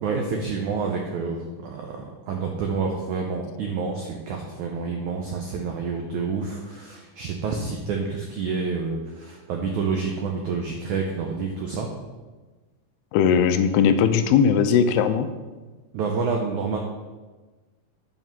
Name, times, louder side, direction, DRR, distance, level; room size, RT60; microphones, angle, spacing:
voice 1, 0.0-11.9 15.9-16.8, right 5 dB, 90° right, 1 dB, 1.6 m, -28 dB
voice 2, 13.1-15.3, left 7 dB, 85° left, 9 dB, 2.6 m, -19 dB
9.3 x 5.8 x 5.8 m, 1.3 s
omnidirectional pair, 4.6 m